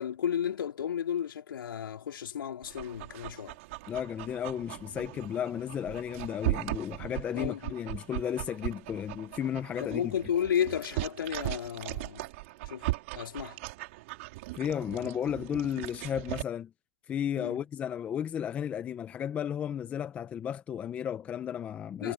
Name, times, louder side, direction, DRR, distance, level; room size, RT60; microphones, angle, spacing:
voice 1, 0.0-3.6 7.3-7.7 9.8-12.3 12.6-12.8 13.1-13.6 17.4-17.6 22.0-22.1, left 9 dB, 55° left, 4.6 m, -33 dB
Dog, 2.6-16.4, right 21 dB, 30° right, 4.7 m, -38 dB
voice 2, 3.9-10.0 14.5-16.7 17.1-22.1, left 9 dB, 10° left, 0.8 m, -34 dB
hypercardioid pair, 160°, 14 cm